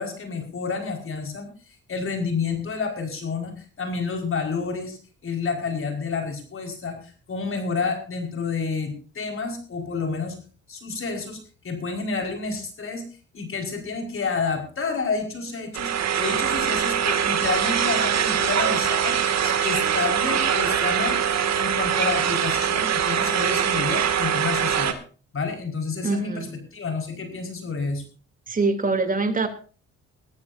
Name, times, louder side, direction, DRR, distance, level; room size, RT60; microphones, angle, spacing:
voice 1, 0.0-10.3 10.7-11.4 11.6-13.0 13.3-21.2 21.5-25.0 25.3-28.0, left 4 dB, 45° left, 4 dB, 5.0 m, -29 dB
sound 1, 15.7-24.9, right 8 dB, 60° right, 2.3 m, -23 dB
voice 2, 26.0-26.5 28.5-29.5, right 3 dB, 25° right, 7 dB, 3.0 m, -23 dB
21.0 x 14.0 x 2.7 m, 0.38 s
cardioid pair, 90°, 30 cm